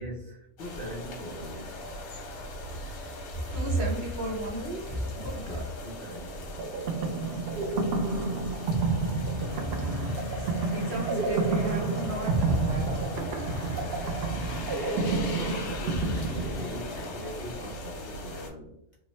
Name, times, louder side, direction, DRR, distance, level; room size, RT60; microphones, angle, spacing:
voice 1, 0.0-1.8 5.3-7.0 15.3-18.7, equal, 65° left, -3 dB, 0.5 m, -41 dB
sound 1, 0.6-18.5, equal, 85° left, 1.4 m, -39 dB
voice 2, 3.5-5.6 9.1-13.8, right 1 dB, 55° right, -1 dB, 0.9 m, -34 dB
sound 2, 6.6-17.1, right 3 dB, 75° right, 0.5 m, -29 dB
3.5 x 2.0 x 3.0 m, 0.77 s
omnidirectional pair, 1.6 m